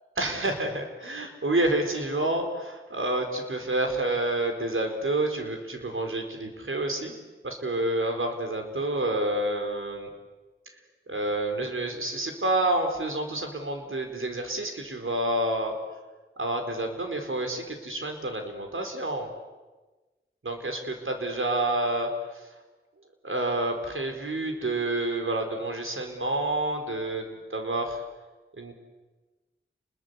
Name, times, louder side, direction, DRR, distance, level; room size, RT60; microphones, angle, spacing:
voice 1, 0.2-7.1 7.4-10.1 11.1-15.7 16.4-19.3 20.4-22.5 23.2-28.0 28.6-28.7, right 2 dB, 80° right, 4 dB, 4.4 m, -29 dB
30.0 x 21.0 x 8.3 m, 1.2 s
wide cardioid pair, 45°, 21 cm